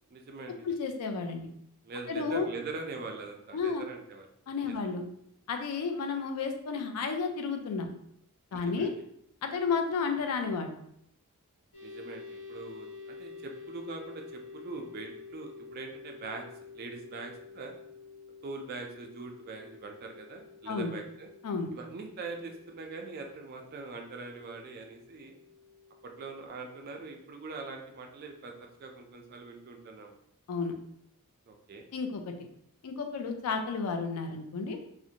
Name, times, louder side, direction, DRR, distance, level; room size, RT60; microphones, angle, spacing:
voice 1, 0.1-0.7 1.8-4.3 4.7-4.8 8.5-9.0 11.8-16.5 16.7-17.7 18.4-21.3 21.7-25.3 26.0-30.2 31.5-31.9, right 3 dB, 45° right, 3 dB, 0.3 m, -42 dB
voice 2, 0.6-1.5 2.1-2.5 3.5-3.8 4.5-5.0 5.5-7.9 8.5-8.9 9.4-10.7 20.7-20.9 21.4-21.7 30.5-30.7 31.9-32.5 32.8-34.8, left 5 dB, 85° left, 5 dB, 0.4 m, -32 dB
sound 1, 11.7-26.5, left 5 dB, 65° left, 1.0 m, -49 dB
2.5 x 2.1 x 2.7 m, 0.73 s
head